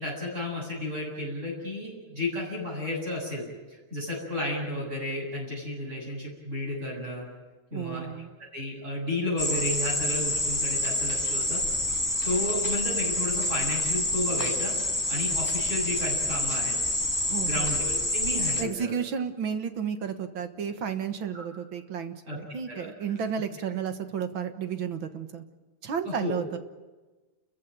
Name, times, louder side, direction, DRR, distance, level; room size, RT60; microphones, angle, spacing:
voice 1, 0.0-7.3 7.7-8.1 8.5-11.6 12.2-14.8 15.1-16.8 17.4-18.9 21.3-21.4 22.3-22.4 22.7-22.9 26.0-26.4, left 1 dB, 30° right, -4 dB, 8.3 m, -32 dB
voice 2, 7.7-8.3 17.3-17.7 18.6-25.4 25.8-26.6, right 7 dB, 65° right, 8 dB, 2.1 m, -32 dB
sound 1, 9.4-18.6, left 1 dB, 10° left, 1.3 m, -27 dB
29.5 x 15.0 x 9.1 m, 1.2 s
omnidirectional pair, 2.3 m